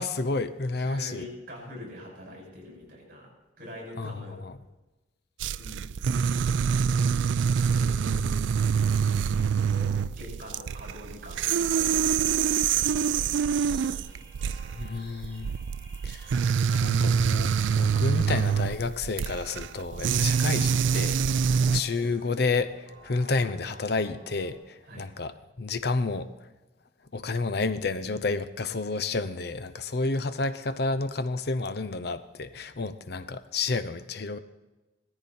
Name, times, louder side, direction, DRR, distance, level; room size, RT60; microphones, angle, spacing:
voice 1, 0.0-1.3 4.0-4.2 4.4-4.6 14.8-15.5 16.0-16.3 16.7-26.3 27.1-34.4, left 3 dB, 60° left, 13 dB, 0.7 m, -30 dB
voice 2, 0.8-3.3 3.6-4.4 5.6-5.9 7.7-8.2 9.0-9.4 9.7-12.5 12.7-14.5 21.5-21.7 24.8-25.1, left 1 dB, 50° right, -1 dB, 6.4 m, -44 dB
sound 1, 5.4-21.8, right 6 dB, 90° right, 0.4 m, -25 dB
sound 2, 12.2-24.5, right 2 dB, 30° right, 6.9 m, -52 dB
17.0 x 14.0 x 4.3 m, 1.1 s
head